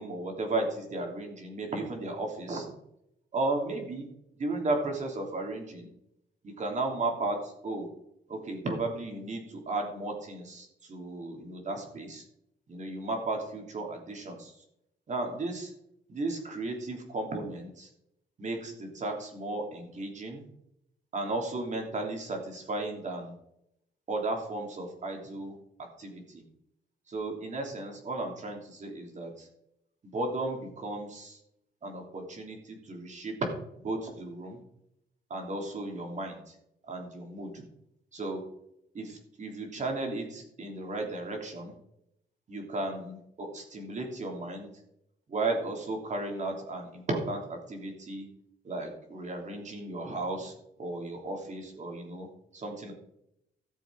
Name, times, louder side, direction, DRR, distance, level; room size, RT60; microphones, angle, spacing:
voice 1, 0.0-2.7 3.3-4.1 4.4-5.9 6.4-7.9 8.3-12.2 12.7-14.5 15.1-15.7 16.1-17.9 18.4-20.4 21.1-23.3 24.1-25.5 26.0-26.4 27.1-29.5 30.0-31.4 31.8-33.4 33.8-34.6 35.3-36.5 36.9-37.6 38.1-38.4 38.9-41.7 42.5-44.7 45.3-48.2 48.6-50.5 50.8-52.3 52.5-52.9, right 2 dB, 45° right, 2 dB, 3.1 m, -35 dB
14.0 x 7.0 x 4.7 m, 0.78 s
cardioid pair, 105°, 18 cm